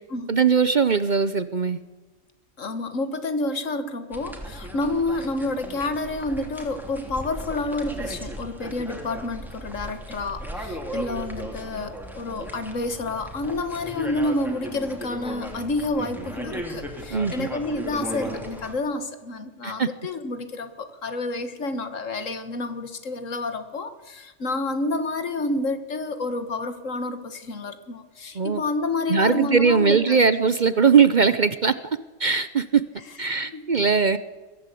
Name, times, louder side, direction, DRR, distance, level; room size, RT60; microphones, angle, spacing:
voice 1, 0.3-1.8 17.1-17.5 19.6-19.9 28.3-28.6 29.1-31.7 32.2-32.8 33.2-34.2, right 5 dB, 40° right, 14 dB, 0.8 m, -20 dB
voice 2, 2.6-30.2 33.5-33.7, left 2 dB, 75° left, 10 dB, 2.0 m, -29 dB
sound 1, 4.1-18.7, equal, ahead, 3.2 m, -36 dB
22.5 x 15.5 x 8.4 m, 1.2 s
omnidirectional pair, 1.3 m